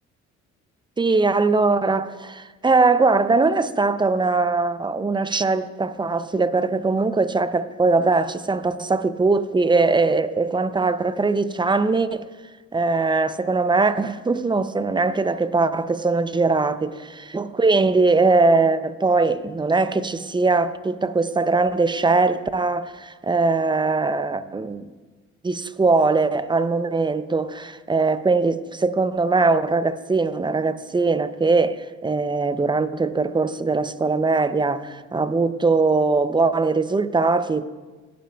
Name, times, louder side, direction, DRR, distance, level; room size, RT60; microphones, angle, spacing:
voice 1, 1.0-12.3 12.7-16.9 17.3-24.8 25.4-37.7, right 3 dB, 15° right, 0.5 m, -21 dB
17.0 x 10.5 x 2.3 m
cardioid pair, 90°, 30 cm